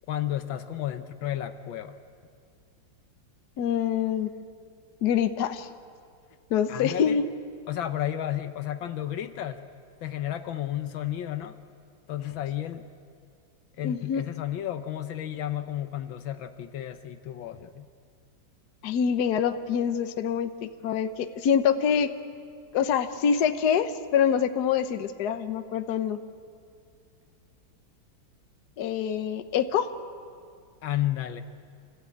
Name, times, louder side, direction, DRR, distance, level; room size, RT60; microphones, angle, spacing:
voice 1, 0.1-2.0 6.7-7.2 7.7-9.6 10.0-11.6 12.1-12.8 13.8-17.9 30.8-31.4, left 12 dB, 75° left, 9 dB, 1.6 m, -32 dB
voice 2, 3.6-4.3 5.0-5.7 6.5-7.2 13.8-14.2 18.8-22.1 22.7-26.2 28.8-29.9, left 8 dB, 60° left, 9 dB, 1.4 m, -25 dB
27.5 x 16.0 x 8.6 m, 2.3 s
omnidirectional pair, 2.2 m